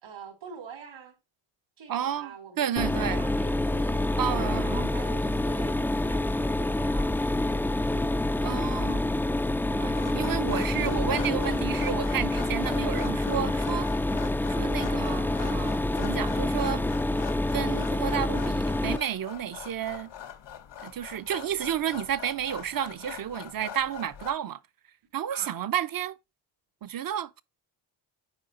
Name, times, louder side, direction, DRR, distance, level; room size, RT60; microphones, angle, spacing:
voice 1, 0.0-1.2 1.8-8.1 10.1-10.4 11.4-11.8 25.3-25.6, right 6 dB, 85° right, 3.3 m, -46 dB
voice 2, 1.9-2.3 2.6-3.2 4.2-4.9 8.4-9.1 9.7-13.9 14.5-16.9 17.5-20.1 20.8-24.6 25.1-26.2 26.8-27.4, right 10 dB, 45° right, 0.6 m, -31 dB
Mechanisms, 2.8-19.0, left 1 dB, 5° left, 0.3 m, -27 dB
sound 1, 9.9-24.3, left 9 dB, 60° left, 1.2 m, -43 dB
8.9 x 4.9 x 2.5 m
cardioid pair, 85°, 47 cm